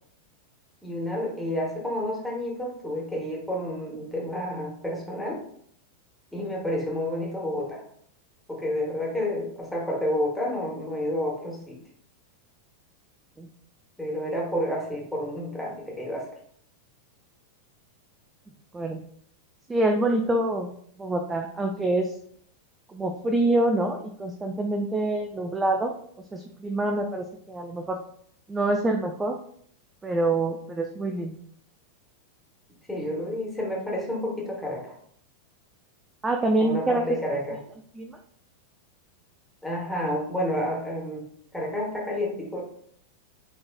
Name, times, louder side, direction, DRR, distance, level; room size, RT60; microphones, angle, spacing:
voice 1, 0.8-5.4 6.3-7.8 8.5-11.8 14.0-16.3 32.9-34.9 36.6-37.6 39.6-41.3 41.5-42.6, left 1 dB, ahead, -3 dB, 1.4 m, -30 dB
voice 2, 19.7-20.7 21.0-22.1 22.9-25.9 26.3-28.0 28.5-29.4 30.0-31.3 36.2-37.0 38.0-38.2, right 2 dB, 15° right, 4 dB, 0.4 m, -26 dB
6.1 x 3.0 x 2.3 m, 0.64 s
figure-of-eight pair, 90°, 0 cm